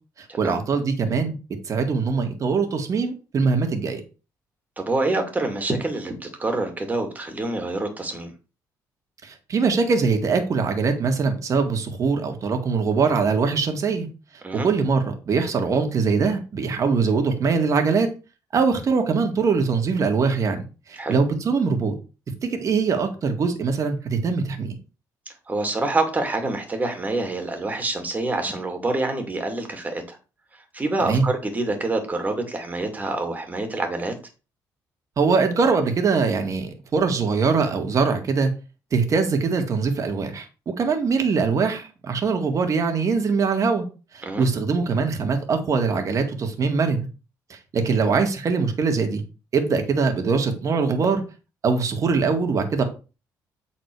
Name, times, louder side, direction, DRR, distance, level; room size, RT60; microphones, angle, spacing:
voice 1, 0.4-1.4 1.7-4.0 9.2-14.1 14.6-18.1 18.5-20.6 20.9-21.9 22.4-24.7 31.0-31.3 35.2-38.5 38.9-43.9 44.1-47.1 47.5-49.2 49.5-51.2 51.6-52.8, right 4 dB, 45° right, 5 dB, 1.8 m, -22 dB
voice 2, 4.8-8.3 14.4-14.7 20.9-21.2 25.5-30.2 30.5-34.1 44.2-44.5, right 2 dB, 20° right, 4 dB, 2.3 m, -26 dB
8.3 x 4.2 x 4.7 m, 0.32 s
cardioid pair, 95°, 7 cm